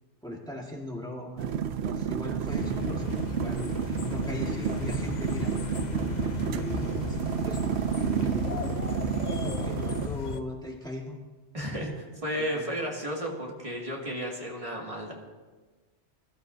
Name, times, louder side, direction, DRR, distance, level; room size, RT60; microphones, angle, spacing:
voice 1, 0.2-1.5 1.8-7.2 7.4-7.9 8.3-8.8 9.3-11.2 12.5-12.7, left 1 dB, 5° left, -2 dB, 1.8 m, -39 dB
sound 1, 1.4-10.1, right 8 dB, 70° right, 0.8 m, -30 dB
sound 2, 2.5-10.4, left 6 dB, 50° left, 0.6 m, -35 dB
voice 2, 11.5-15.1, equal, 30° right, -2 dB, 2.4 m, -33 dB
22.5 x 12.5 x 2.7 m, 1.3 s
omnidirectional pair, 1.2 m